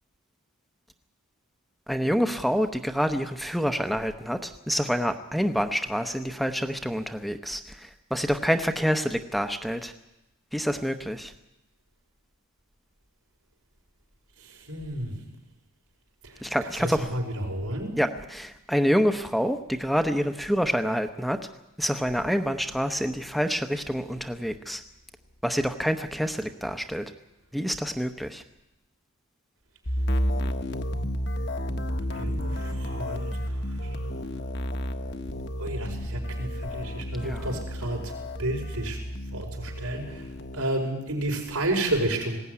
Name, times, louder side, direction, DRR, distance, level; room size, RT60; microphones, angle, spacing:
voice 1, 1.9-7.6 8.1-9.9 10.5-11.3 16.4-17.1 18.0-21.4 21.8-24.8 25.4-27.0 27.5-28.4 37.2-37.6, equal, ahead, 7 dB, 0.8 m, -27 dB
voice 2, 14.7-15.2 16.8-17.9 32.1-33.3 35.6-38.0 38.4-39.0 39.3-40.2 40.5-42.4, right 1 dB, 90° right, 1 dB, 5.4 m, -30 dB
sound 1, 29.8-40.6, equal, 50° left, 1.3 m, -31 dB
20.5 x 16.5 x 9.7 m, 0.94 s
head